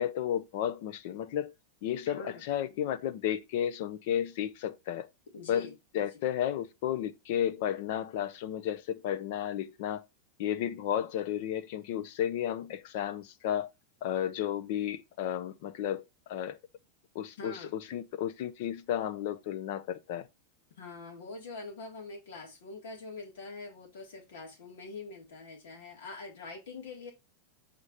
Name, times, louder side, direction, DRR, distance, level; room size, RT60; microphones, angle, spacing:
voice 1, 0.0-1.5 1.8-5.1 5.5-10.0 10.4-13.7 14.0-16.6 17.1-20.3, left 10 dB, 45° left, 0.5 m, -33 dB
voice 2, 2.1-2.5 5.3-6.3 17.4-18.0 20.8-27.1, left 3 dB, 75° left, 3.6 m, -45 dB
5.2 x 5.0 x 4.2 m
supercardioid pair, 180°, 0 cm